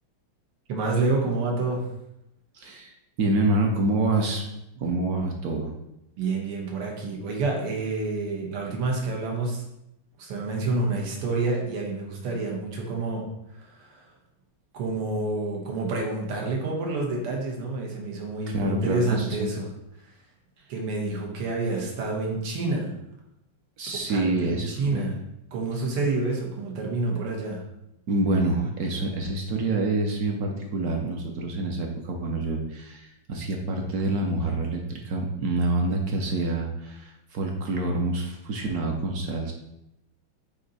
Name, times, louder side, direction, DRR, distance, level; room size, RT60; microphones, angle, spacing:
voice 1, 0.7-1.8 6.2-9.6 10.2-13.3 13.6-14.1 14.7-19.7 20.7-22.9 24.1-25.2 25.5-27.6, right 3 dB, 90° right, 0 dB, 2.1 m, -28 dB
voice 2, 2.5-4.4 4.8-5.7 18.5-19.5 23.8-25.1 28.1-39.5, right 2 dB, 65° right, 2 dB, 0.9 m, -27 dB
8.1 x 2.9 x 4.1 m, 0.85 s
omnidirectional pair, 2.4 m